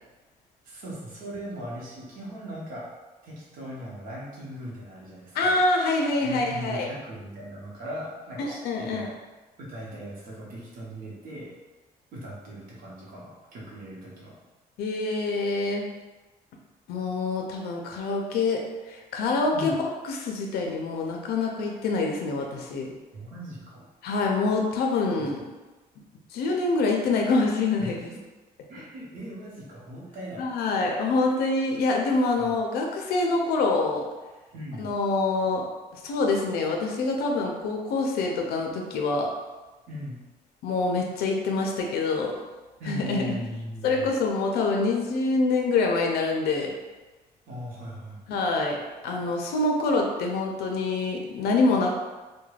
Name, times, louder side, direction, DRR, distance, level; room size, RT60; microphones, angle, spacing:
voice 1, 0.6-2.9 3.2-5.5 6.2-9.1 9.6-11.5 12.1-14.3 19.5-19.7 23.1-23.8 25.2-25.3 27.8-28.2 28.7-30.4 32.4-32.5 34.5-34.9 39.9-40.2 42.8-44.1 47.5-48.2, equal, 60° right, -5 dB, 0.8 m, -39 dB
voice 2, 5.3-6.9 8.4-9.1 14.8-15.8 16.9-19.8 20.1-22.9 24.0-25.4 26.3-28.0 30.4-34.0 34.8-35.6 36.0-39.3 40.6-42.4 42.9-43.5 43.8-46.7 48.3-48.8 49.0-52.0, left 3 dB, 90° left, 1 dB, 0.4 m, -25 dB
2.3 x 2.2 x 3.1 m, 1.2 s
cardioid pair, 170°, 16 cm